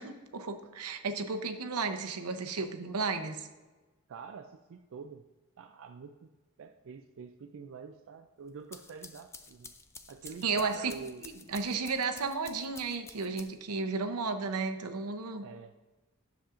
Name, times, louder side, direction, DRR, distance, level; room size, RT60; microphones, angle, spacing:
voice 1, 0.0-3.5 10.4-10.9 11.2-15.5, right 4 dB, 85° right, 7 dB, 0.8 m, -33 dB
voice 2, 4.1-5.2 5.6-6.3 6.6-9.7 10.1-11.2 15.4-15.7, right 5 dB, 60° right, 6 dB, 0.4 m, -46 dB
sound 1, 8.5-13.8, left 4 dB, 10° left, 0.4 m, -51 dB
10.0 x 7.0 x 2.5 m, 1.2 s
head